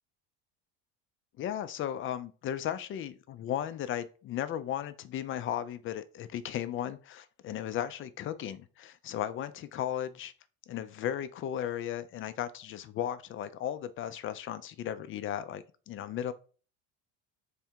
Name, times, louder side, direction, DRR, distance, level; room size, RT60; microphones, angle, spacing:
voice 1, 1.4-10.3 10.7-16.3, left 10 dB, 35° left, 0.4 m, -35 dB
3.6 x 3.4 x 4.4 m
supercardioid pair, 115°, 35 cm